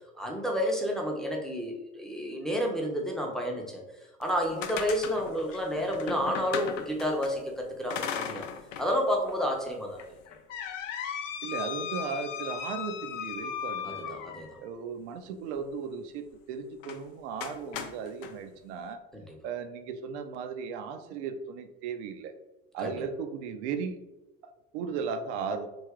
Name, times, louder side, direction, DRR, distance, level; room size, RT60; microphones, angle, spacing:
voice 1, 0.2-3.8 4.2-8.5 8.8-10.0 13.8-14.5 19.1-19.4 22.8-23.0, equal, ahead, 0 dB, 0.7 m, -30 dB
sound 1, 4.2-7.3 7.9-8.9 9.3-9.4 10.0-14.7 16.8-17.0 17.4-18.3, left 8 dB, 65° left, 0.6 m, -37 dB
voice 2, 11.4-14.2 14.6-19.0 19.4-22.3 22.7-24.0 24.4-25.7, right 6 dB, 55° right, 8 dB, 0.6 m, -36 dB
3.4 x 2.6 x 3.5 m, 1.0 s
figure-of-eight pair, 70°, 41 cm